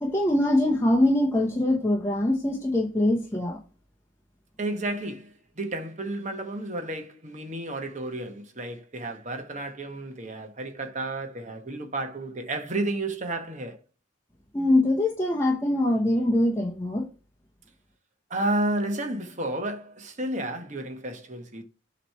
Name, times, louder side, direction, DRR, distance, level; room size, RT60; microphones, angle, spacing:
voice 1, 0.0-3.6 14.5-17.1, left 1 dB, 15° left, 0.9 m, -23 dB
voice 2, 4.6-13.8 18.3-21.6, right 1 dB, 35° right, 1.2 m, -32 dB
7.5 x 3.1 x 5.6 m
head